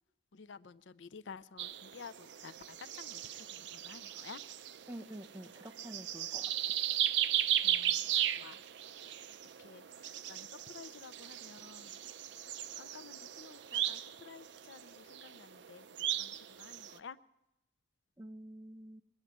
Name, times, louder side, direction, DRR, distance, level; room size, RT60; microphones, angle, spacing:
voice 1, 0.3-4.4 7.6-8.6 9.0-9.2 9.6-12.0 12.4-17.2, left 5 dB, 90° left, 16 dB, 0.6 m, -52 dB
sound 1, 1.6-17.0, right 11 dB, 70° right, 0.6 m, -37 dB
voice 2, 4.9-6.8 18.2-19.0, right 1 dB, 15° right, 5 dB, 1.0 m, -48 dB
21.5 x 7.2 x 9.4 m, 0.89 s
head